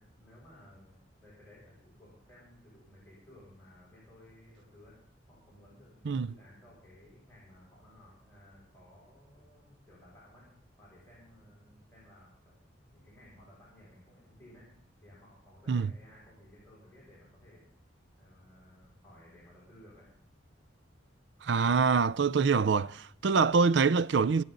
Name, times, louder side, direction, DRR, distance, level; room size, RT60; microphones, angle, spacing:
voice 1, 0.0-5.0 5.3-10.5 10.8-12.5 12.9-14.7 15.0-17.7 18.2-20.1, left 1 dB, 10° left, 6.7 m, -57 dB
voice 2, 21.4-24.4, right 5 dB, 65° right, 0.4 m, -25 dB
26.0 x 8.8 x 4.0 m
head